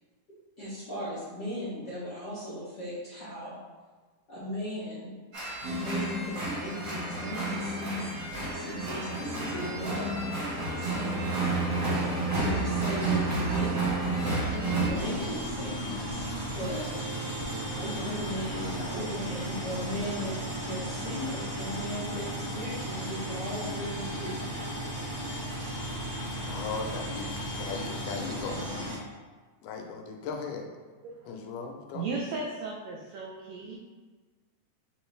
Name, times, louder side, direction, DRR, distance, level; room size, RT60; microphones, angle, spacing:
voice 1, 0.6-3.6 4.3-5.1 5.7-8.0 8.5-10.1 10.8-11.2 12.3-17.0 17.8-20.3 20.6-25.0, equal, 60° left, -11 dB, 1.1 m, -37 dB
sound 1, 5.3-14.9, right 2 dB, 50° right, 1.4 m, -30 dB
sound 2, 8.3-23.1, right 3 dB, 70° right, 1.6 m, -44 dB
sound 3, 14.9-28.9, equal, 35° right, 1.3 m, -35 dB
voice 2, 26.5-29.0 29.6-30.7 31.3-32.0, left 4 dB, 85° left, 3 dB, 2.1 m, -37 dB
voice 3, 31.9-33.8, right 3 dB, 85° right, -2 dB, 1.5 m, -36 dB
4.9 x 3.1 x 3.2 m, 1.4 s
omnidirectional pair, 3.6 m